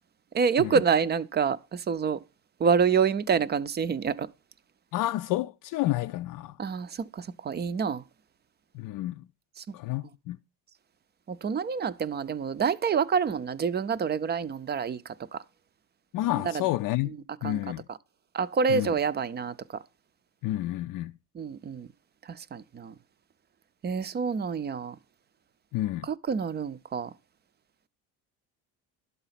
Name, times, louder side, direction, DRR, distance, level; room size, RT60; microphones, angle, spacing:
voice 1, 0.3-2.2 2.6-4.3 6.6-8.0 9.6-9.7 11.3-15.0 15.3-15.4 16.4-16.6 17.4-17.6 18.3-19.5 21.3-21.9 22.3-22.9 23.8-25.0 26.0-27.1, right 6 dB, 25° right, 0.5 m, -27 dB
voice 2, 4.9-6.5 8.7-9.2 9.7-10.4 16.1-17.2 17.4-17.8 18.7-18.9 20.4-21.1 25.7-26.1, left 16 dB, 60° left, 0.5 m, -30 dB
11.5 x 4.1 x 5.7 m
supercardioid pair, 90°, 37 cm